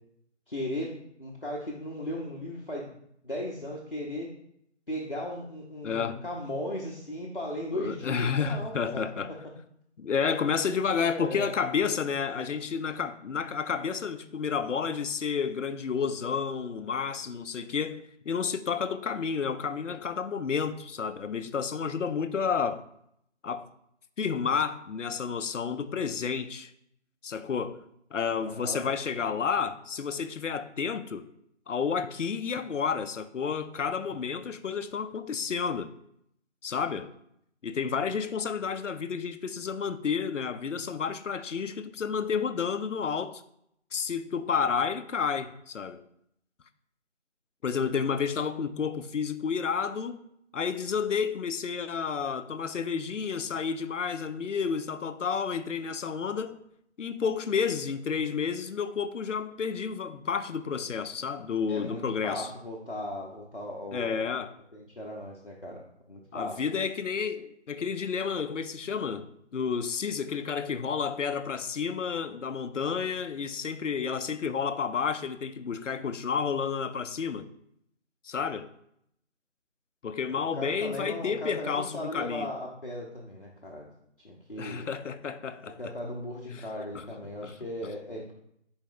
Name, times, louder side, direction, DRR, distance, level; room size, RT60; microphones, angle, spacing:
voice 1, 0.5-2.9 3.2-4.3 4.9-9.0 9.3-9.4 11.0-11.5 28.5-28.9 61.7-64.2 64.7-65.8 66.1-66.6 80.5-83.9 84.2-84.9 85.8-88.3, left 1 dB, 45° left, 0.7 m, -37 dB
voice 2, 5.8-6.2 7.7-9.3 10.0-22.8 23.4-23.7 24.2-26.7 27.2-27.8 28.1-31.3 31.7-35.9 36.6-37.1 37.6-43.4 43.9-46.0 47.6-50.2 50.5-56.6 57.0-62.5 63.9-64.5 66.3-69.3 69.5-77.5 78.2-78.7 80.0-82.5 84.6-85.9 86.5-86.7 86.9-87.5, left 6 dB, 90° left, 0.5 m, -31 dB
4.3 x 3.4 x 3.6 m
figure-of-eight pair, 175°, 36 cm